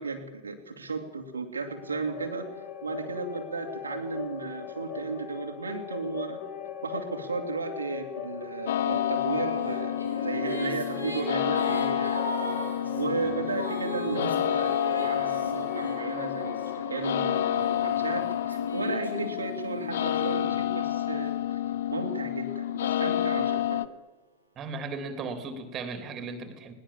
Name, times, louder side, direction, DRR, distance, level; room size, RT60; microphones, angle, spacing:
voice 1, 0.0-2.5 2.8-6.4 6.8-12.2 12.9-21.6 21.9-23.8, right 4 dB, 75° right, 3 dB, 2.5 m, -34 dB
sound 1, 1.6-19.4, left 6 dB, 40° left, 3.2 m, -40 dB
sound 2, 8.7-23.9, left 11 dB, 60° left, 0.8 m, -29 dB
Female singing, 9.7-16.6 17.3-21.0, equal, 80° left, 4.1 m, -38 dB
voice 2, 24.6-26.7, right 4 dB, 30° right, 9 dB, 3.2 m, -36 dB
20.5 x 19.5 x 7.4 m, 1.1 s
figure-of-eight pair, 90°, 0 cm